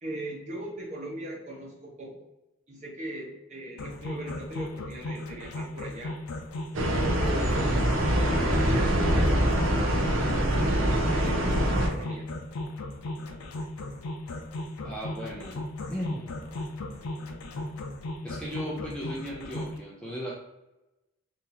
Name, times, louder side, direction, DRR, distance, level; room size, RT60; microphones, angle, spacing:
voice 1, 0.0-2.1 2.7-6.2 7.2-7.6 8.2-10.2 10.6-12.3, right 1 dB, 35° right, -4 dB, 0.9 m, -39 dB
sound 1, 3.8-19.8, left 2 dB, 90° left, 0.5 m, -36 dB
sound 2, 6.7-11.9, right 1 dB, 65° right, 0.6 m, -24 dB
voice 2, 14.8-15.6 15.9-16.3 18.2-20.3, equal, 5° left, -5 dB, 0.4 m, -36 dB
2.8 x 2.6 x 3.9 m, 0.99 s
head